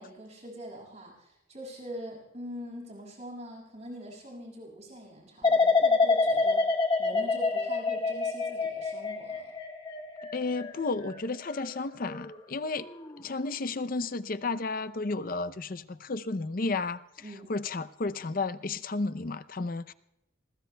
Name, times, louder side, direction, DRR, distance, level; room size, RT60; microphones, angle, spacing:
voice 1, 0.0-6.6 7.0-9.5 17.2-17.5, equal, 35° right, -1 dB, 6.4 m, -43 dB
sound 1, 5.4-12.4 12.8-13.2, left 3 dB, 25° left, 1.5 m, -27 dB
voice 2, 10.3-12.8 13.2-17.0 17.5-19.9, left 3 dB, 45° left, 13 dB, 0.6 m, -32 dB
29.0 x 21.5 x 2.3 m, 0.85 s
head